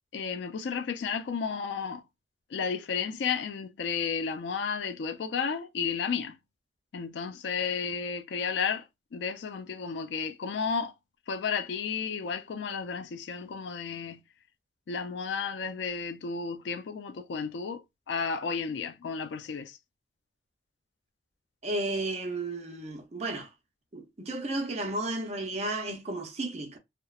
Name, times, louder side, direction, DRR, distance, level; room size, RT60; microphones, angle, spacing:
voice 1, 0.1-2.0 2.5-6.4 6.9-8.8 9.1-10.9 11.3-14.2 14.9-19.8, left 6 dB, 80° left, 0.4 m, -32 dB
voice 2, 21.6-23.5 23.9-26.8, right 2 dB, 35° right, 0.6 m, -33 dB
2.9 x 2.1 x 2.3 m
head